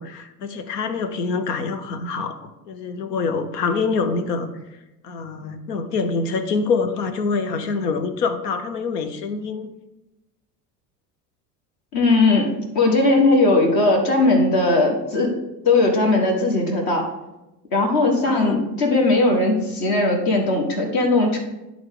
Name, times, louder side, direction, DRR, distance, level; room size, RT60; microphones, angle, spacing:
voice 1, 0.0-2.4 2.7-4.5 5.0-9.7 18.2-18.7, left 4 dB, 75° left, 10 dB, 0.8 m, -25 dB
voice 2, 11.9-12.5 12.7-15.3 15.6-17.0 17.7-21.4, left 2 dB, 45° left, 2 dB, 1.6 m, -18 dB
10.5 x 3.6 x 3.7 m, 0.97 s
figure-of-eight pair, 70°, 49 cm